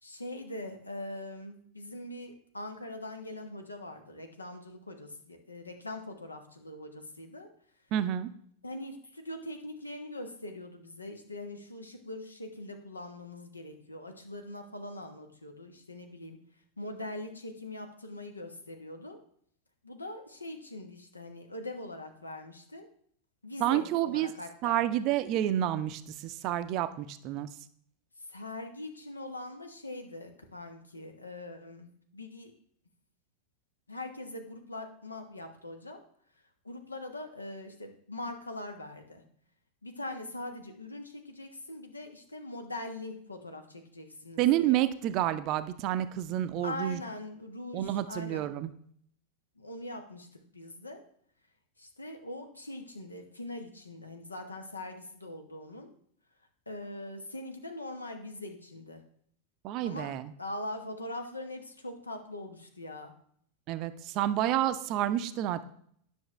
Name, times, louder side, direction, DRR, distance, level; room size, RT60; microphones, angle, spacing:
voice 1, 0.0-7.5 8.6-16.4 16.8-19.2 19.8-22.8 23.4-24.8 28.3-32.5 33.9-36.0 36.6-39.2 39.8-44.8 46.6-48.4 49.6-50.3 50.5-51.0 51.8-55.9 56.7-59.0 59.8-60.1 60.4-63.1, left 1 dB, 80° left, 5 dB, 1.1 m, -42 dB
voice 2, 7.9-8.3 23.6-24.3 24.6-27.5 44.4-47.0 47.7-48.7 59.6-60.3 63.7-65.7, right 12 dB, 40° right, 12 dB, 0.5 m, -29 dB
10.0 x 6.2 x 3.2 m, 0.63 s
figure-of-eight pair, 90°, 0 cm